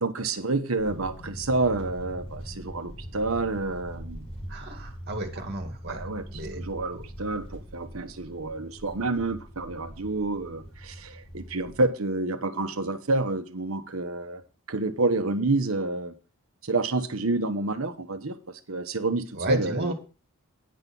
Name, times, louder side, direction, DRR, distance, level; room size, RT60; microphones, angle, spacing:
voice 1, 0.0-4.3 5.9-14.4 14.7-16.1 16.6-18.4 18.7-19.9, right 2 dB, 80° right, 8 dB, 1.2 m, -28 dB
sound 1, 0.8-11.9, equal, 25° left, 3.0 m, -42 dB
voice 2, 4.5-6.1 6.3-6.6 6.9-7.0 19.3-19.9, right 1 dB, 50° right, 4 dB, 2.2 m, -33 dB
9.7 x 5.5 x 6.2 m, 0.34 s
head